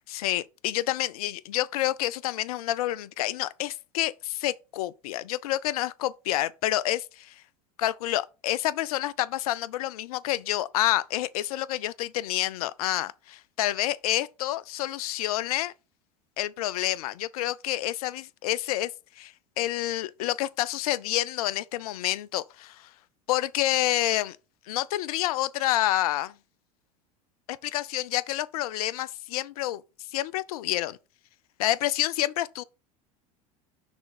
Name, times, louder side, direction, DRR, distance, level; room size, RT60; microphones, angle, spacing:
voice 1, 0.0-7.4 7.8-15.7 16.4-18.9 19.2-22.9 23.3-24.4 24.7-26.3 27.5-29.8 30.1-31.0 31.6-32.6, left 14 dB, 70° left, 0.5 m, -28 dB
6.2 x 3.5 x 6.0 m
hypercardioid pair, 80°, 20 cm